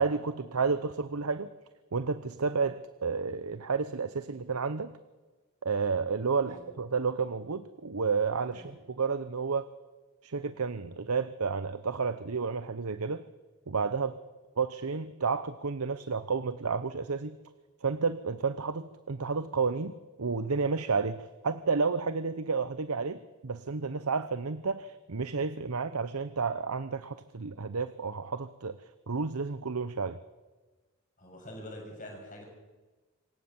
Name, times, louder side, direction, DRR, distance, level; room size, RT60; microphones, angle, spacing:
voice 1, 0.0-1.5 1.9-4.9 5.6-9.7 10.2-13.2 13.7-14.1 14.6-17.4 17.8-19.9 20.2-28.8 29.1-30.2, right 5 dB, 80° right, 13 dB, 0.9 m, -31 dB
voice 2, 31.2-32.5, left 1 dB, 35° left, 1 dB, 7.2 m, -45 dB
26.5 x 16.0 x 7.3 m, 1.2 s
head